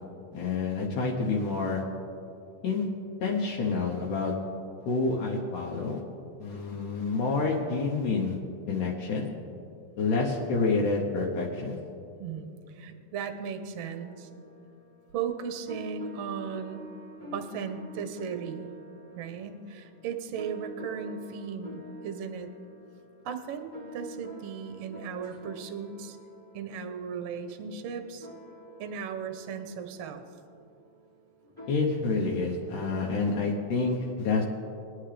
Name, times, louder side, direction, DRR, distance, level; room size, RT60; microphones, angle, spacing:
voice 1, 0.3-1.8 2.6-2.9 3.2-4.3 4.9-6.0 6.4-8.4 8.7-9.3 10.0-11.8 31.7-34.5, left 4 dB, 70° left, -2 dB, 2.5 m, -28 dB
voice 2, 12.2-14.3 15.1-16.9 17.3-18.7 19.1-22.5 23.2-26.2 26.5-28.3 28.8-30.2, right 7 dB, 65° right, 7 dB, 1.6 m, -36 dB
sound 1, 13.9-31.7, equal, 5° left, 1.9 m, -47 dB
23.0 x 9.5 x 3.4 m, 2.6 s
omnidirectional pair, 3.9 m